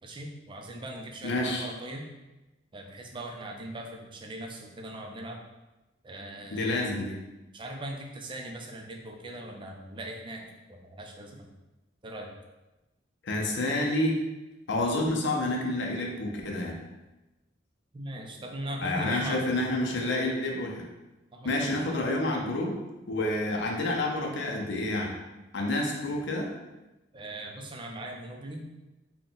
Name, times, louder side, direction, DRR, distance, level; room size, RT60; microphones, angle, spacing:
voice 1, 0.0-2.1 2.7-5.4 6.0-6.8 7.5-11.5 12.0-12.3 17.9-19.6 21.3-21.9 27.1-28.7, right 1 dB, 25° right, 1 dB, 0.5 m, -40 dB
voice 2, 1.2-1.6 6.5-7.2 13.2-14.2 14.7-16.8 18.8-20.9 21.4-22.7 23.1-25.1 25.5-26.5, left 1 dB, 65° left, 0 dB, 0.6 m, -29 dB
3.7 x 2.2 x 3.9 m, 1.0 s
head